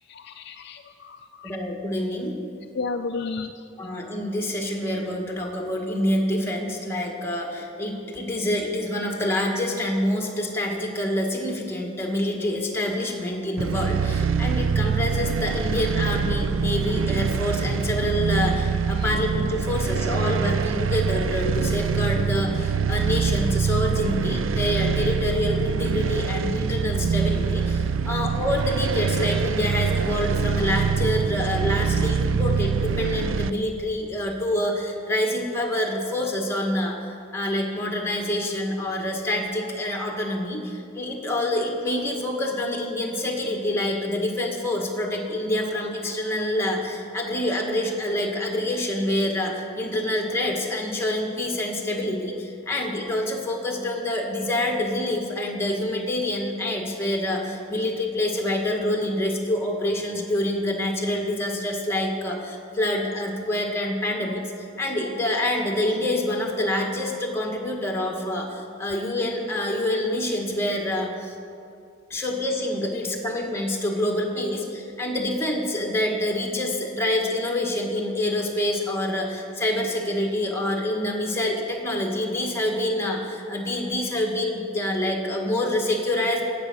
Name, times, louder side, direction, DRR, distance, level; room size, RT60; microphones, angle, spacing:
voice 1, 0.1-1.5 2.7-3.5, left 4 dB, 55° left, 7 dB, 0.4 m, -32 dB
voice 2, 1.4-2.4 3.8-37.0 37.3-64.4 64.8-71.3 72.1-86.4, left 1 dB, 15° left, 0 dB, 1.6 m, -26 dB
sound 1, 13.6-33.5, right 6 dB, 80° right, 0.4 m, -24 dB
15.0 x 8.4 x 6.2 m, 2.5 s
head